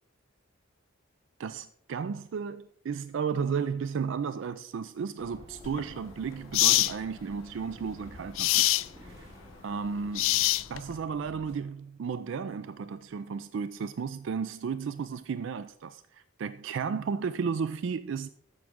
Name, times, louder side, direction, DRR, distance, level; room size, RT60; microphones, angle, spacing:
voice 1, 1.4-8.6 9.0-9.3 9.6-18.3, right 6 dB, 60° right, 0.3 m, -34 dB
sound 1, 5.2-11.6, equal, 25° right, 3.2 m, -51 dB
sound 2, 5.6-5.8 6.5-6.9 8.4-8.9 10.1-10.9, left 17 dB, 70° left, 0.3 m, -24 dB
13.5 x 6.0 x 3.6 m
head